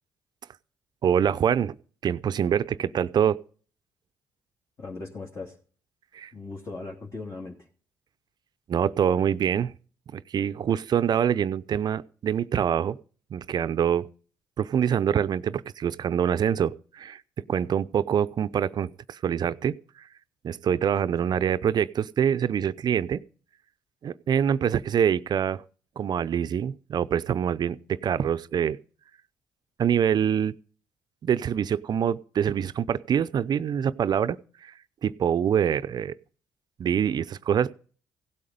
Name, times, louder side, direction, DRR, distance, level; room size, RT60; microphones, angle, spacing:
voice 1, 1.0-1.7 2.0-3.4 6.1-6.3 8.7-9.7 10.1-13.0 13.3-14.1 14.6-17.2 17.5-19.8 20.4-23.2 24.0-25.6 26.0-28.8 29.8-30.5 31.2-34.7 35.0-36.1 36.8-37.7, right 8 dB, 55° right, 0.6 m, -25 dB
voice 2, 4.8-5.6 6.3-7.7 21.2-21.4, left 3 dB, 40° left, 2.8 m, -38 dB
16.5 x 8.5 x 5.2 m
hypercardioid pair, 50°, 9 cm